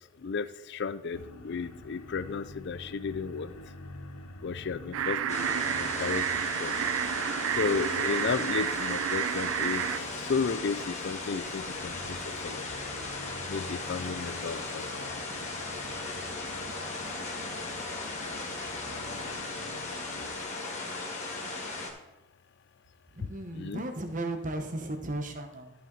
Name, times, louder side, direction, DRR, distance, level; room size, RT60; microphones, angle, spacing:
voice 1, 0.2-3.6 4.4-6.3 6.6-6.8 7.6-12.7 13.1-13.2 13.5-15.1 23.5-23.8, left 5 dB, 50° left, 14 dB, 0.4 m, -33 dB
sound 1, 1.1-20.3, left 1 dB, 75° left, 1.0 m, -47 dB
sound 2, 4.9-10.0, right 9 dB, 65° right, 0.4 m, -30 dB
sound 3, 5.3-21.9, left 3 dB, 30° left, 1.6 m, -37 dB
voice 2, 23.1-25.7, right 1 dB, 35° right, 6 dB, 1.1 m, -35 dB
13.5 x 5.8 x 4.0 m, 1.0 s
head